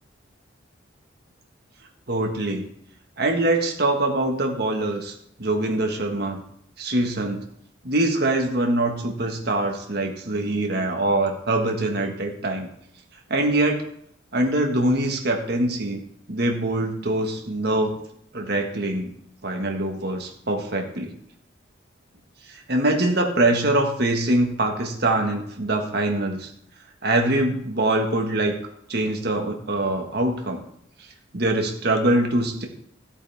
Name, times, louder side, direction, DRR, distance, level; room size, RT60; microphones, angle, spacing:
voice 1, 2.1-2.7 3.2-6.4 6.8-7.4 7.8-12.7 13.3-13.8 14.3-16.0 16.3-18.0 18.3-19.1 19.4-21.1 22.5-26.5 27.0-28.5 28.9-30.6 31.3-32.7, right 2 dB, 55° right, 2 dB, 1.6 m, -23 dB
14.5 x 8.0 x 3.5 m, 0.69 s
head